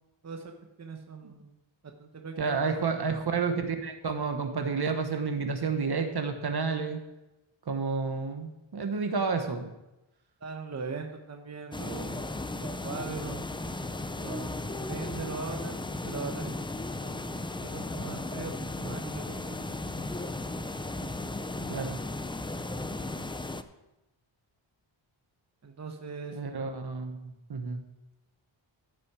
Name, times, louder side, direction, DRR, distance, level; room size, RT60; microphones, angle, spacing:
voice 1, 0.8-1.5 2.0-3.2 10.4-12.3 12.6-13.5 14.2-16.5 17.6-19.6 25.6-26.6, right 4 dB, 35° right, 3 dB, 0.9 m, -40 dB
voice 2, 2.4-7.0 7.7-9.7 17.0-17.2 21.7-22.0 26.3-27.8, right 4 dB, 50° right, 6 dB, 1.2 m, -30 dB
sound 1, 11.7-23.6, left 2 dB, 10° left, 0.4 m, -35 dB
14.5 x 6.0 x 4.8 m, 0.97 s
wide cardioid pair, 115°, 49 cm